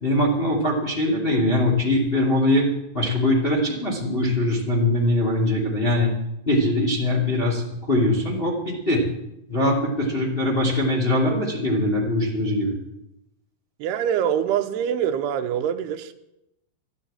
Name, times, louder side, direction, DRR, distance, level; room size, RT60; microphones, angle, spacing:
voice 1, 0.0-2.7 2.9-6.1 6.5-9.0 9.5-12.8, left 1 dB, 20° left, 1.7 m, -22 dB
voice 2, 13.8-16.2, right 9 dB, 80° right, 2.7 m, -24 dB
12.0 x 11.5 x 8.7 m
omnidirectional pair, 5.2 m